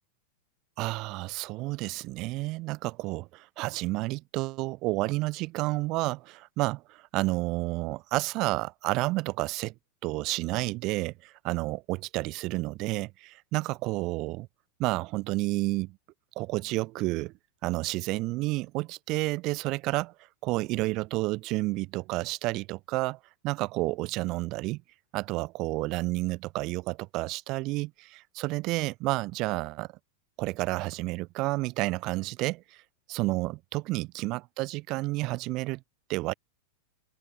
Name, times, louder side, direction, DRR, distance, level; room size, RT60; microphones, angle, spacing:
voice 1, 0.8-9.7 10.0-14.5 14.8-16.0 16.4-17.3 17.6-20.1 20.4-23.2 23.4-24.8 25.1-29.9 30.4-32.6 33.1-35.8 36.1-36.3, right 21 dB, 40° right, 0.7 m, -30 dB
open air
figure-of-eight pair, 90°, 0 cm